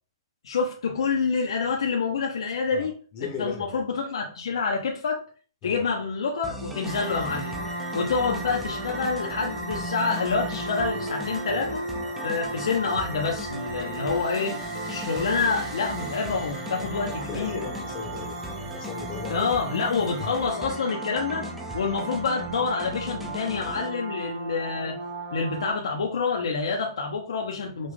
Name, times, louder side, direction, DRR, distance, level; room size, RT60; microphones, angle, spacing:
voice 1, 0.4-2.9 3.2-5.2 5.6-7.6 7.9-11.8 12.2-14.6 14.9-17.6 19.3-21.5 21.7-25.0 25.3-27.9, left 4 dB, 80° left, 0.8 m, -27 dB
voice 2, 3.1-3.8 5.6-5.8 14.4-14.6 17.1-18.4 18.7-19.5, left 6 dB, 25° left, 0.9 m, -37 dB
sound 1, 6.4-23.9, equal, 5° right, 0.6 m, -39 dB
sound 2, 6.8-25.7, right 2 dB, 25° right, 1.3 m, -35 dB
5.0 x 2.5 x 3.7 m
hypercardioid pair, 150°, 3 cm